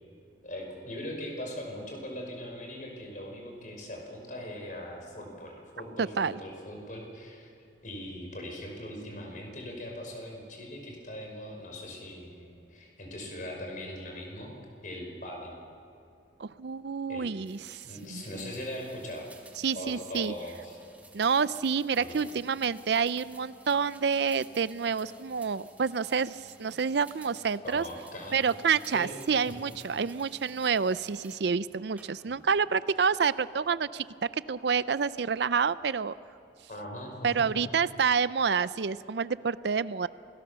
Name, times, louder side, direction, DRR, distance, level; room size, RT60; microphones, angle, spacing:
voice 1, 0.4-7.5 7.8-14.6 14.8-15.6 17.1-17.3 17.8-19.3 19.7-20.8 22.0-22.2 27.6-28.4 28.9-29.1 29.5-29.7 32.3-32.4 36.7-37.5, left 1 dB, 45° left, 1 dB, 5.4 m, -40 dB
voice 2, 6.0-6.4 16.4-17.8 18.1-18.5 19.6-20.3 21.1-27.8 28.3-34.0 34.3-36.1 37.2-40.1, right 6 dB, 60° right, 16 dB, 0.5 m, -28 dB
sound 1, 17.4-31.5 32.0-32.5, right 2 dB, 10° right, 1.8 m, -54 dB
27.0 x 18.5 x 6.9 m, 2.6 s
head